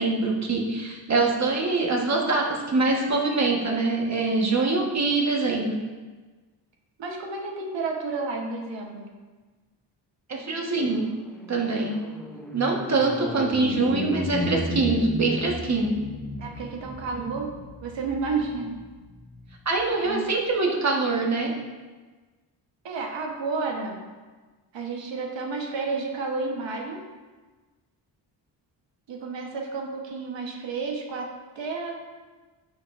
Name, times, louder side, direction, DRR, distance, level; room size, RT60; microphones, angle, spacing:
voice 1, 0.0-5.8 10.3-11.1 11.5-12.0 12.5-16.0 17.1-17.3 19.6-21.5, right 3 dB, 35° right, 0 dB, 1.3 m, -24 dB
voice 2, 7.0-9.1 16.4-17.5 17.8-18.8 20.0-20.3 22.8-24.0 24.7-27.0 29.1-32.0, right 4 dB, 75° right, 1 dB, 1.2 m, -31 dB
sound 1, 10.5-20.1, left 1 dB, ahead, 0.6 m, -34 dB
10.5 x 6.4 x 2.5 m, 1.3 s
wide cardioid pair, 135°, 44 cm